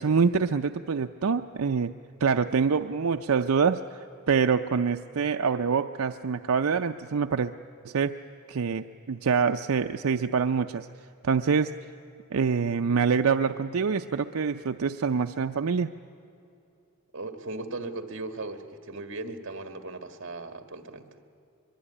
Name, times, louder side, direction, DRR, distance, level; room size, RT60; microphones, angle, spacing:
voice 1, 0.0-1.9 2.2-7.5 7.8-8.2 8.5-10.9 11.2-11.7 12.3-15.9, right 5 dB, 85° right, 7 dB, 0.5 m, -25 dB
voice 2, 17.1-21.1, right 2 dB, 60° right, 8 dB, 1.8 m, -37 dB
23.5 x 23.0 x 9.9 m, 2.6 s
head